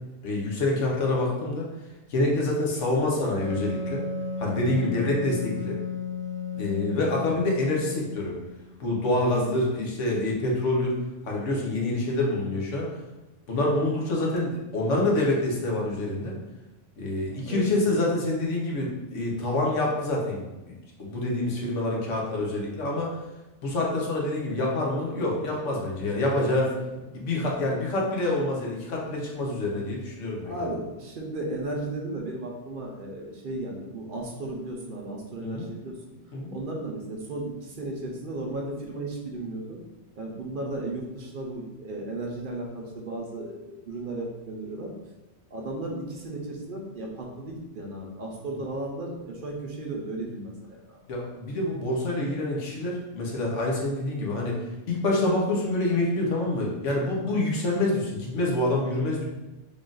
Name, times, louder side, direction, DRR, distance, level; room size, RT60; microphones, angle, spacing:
voice 1, 0.2-1.7 2.1-4.0 4.4-5.8 6.5-8.4 8.8-11.0 11.2-12.9 13.5-16.3 17.0-23.2 23.6-26.7 27.1-30.7 35.4-35.7 36.3-36.6 51.1-59.2, left 2 dB, 85° left, -2 dB, 1.2 m, -27 dB
Wind instrument woodwind instrument, 3.4-8.8, left 4 dB, 40° left, 1.1 m, -34 dB
voice 2, 9.5-9.8 17.4-17.7 30.4-35.9 36.5-39.8 40.2-44.9 45.5-51.0, right 2 dB, 50° right, 0 dB, 0.7 m, -35 dB
3.6 x 2.4 x 3.8 m, 1.1 s
omnidirectional pair, 1.2 m